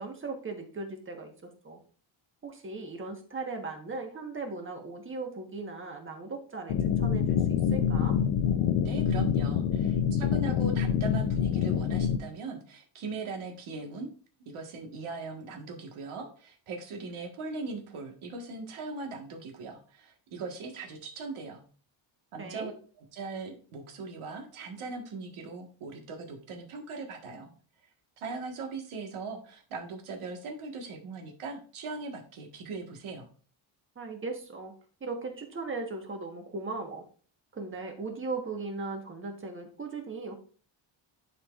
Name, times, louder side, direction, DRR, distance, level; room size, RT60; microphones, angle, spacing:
voice 1, 0.0-1.8 2.4-8.2 22.4-22.7 33.9-34.7 35.0-37.0 37.5-40.3, right 3 dB, 25° right, 3 dB, 1.3 m, -38 dB
sound 1, 6.7-12.2, left 8 dB, 75° left, 0.8 m, -26 dB
voice 2, 8.8-14.1 14.5-21.6 22.3-22.7 23.0-27.5 28.2-33.3, right 3 dB, 80° right, 2 dB, 1.7 m, -39 dB
11.0 x 4.5 x 2.5 m, 0.42 s
cardioid pair, 155°, 49 cm